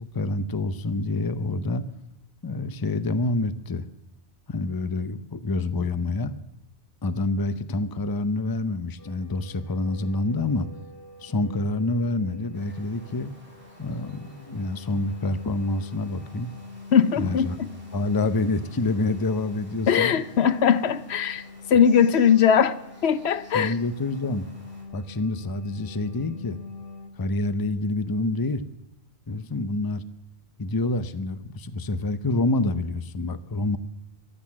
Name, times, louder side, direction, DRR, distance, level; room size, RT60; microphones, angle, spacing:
voice 1, 0.0-1.9 2.4-3.8 4.5-6.3 7.0-10.7 11.2-13.3 13.8-16.5 17.2-17.6 17.9-20.2 23.5-24.4 24.9-26.6 27.2-28.6 29.3-30.0 30.6-33.8, left 2 dB, 25° left, 13 dB, 0.6 m, -27 dB
sound 1, 9.0-27.1, left 3 dB, 60° left, 1.7 m, -45 dB
sound 2, 12.5-24.8, equal, 10° right, 4.1 m, -54 dB
voice 2, 16.9-17.7 19.9-21.4 21.7-22.8 23.0-23.7, left 8 dB, 75° left, 15 dB, 1.0 m, -20 dB
14.5 x 11.5 x 7.3 m, 0.87 s
omnidirectional pair, 1.1 m